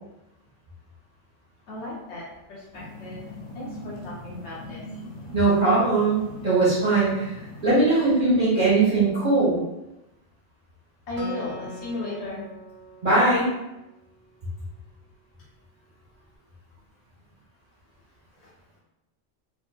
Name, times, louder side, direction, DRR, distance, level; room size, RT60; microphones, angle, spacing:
voice 1, 1.7-3.2 3.5-4.8 11.1-12.5 18.3-18.5, left 2 dB, 65° left, -6 dB, 1.1 m, -35 dB
sound 1, 2.7-7.8, left 1 dB, 90° left, 1.2 m, -41 dB
voice 2, 5.3-7.4 7.6-9.6 13.0-13.5, right 3 dB, 40° right, -8 dB, 0.8 m, -20 dB
Acoustic guitar, 11.2-14.6, right 1 dB, 65° right, 0.8 m, -42 dB
2.6 x 2.5 x 2.2 m, 0.93 s
omnidirectional pair, 1.3 m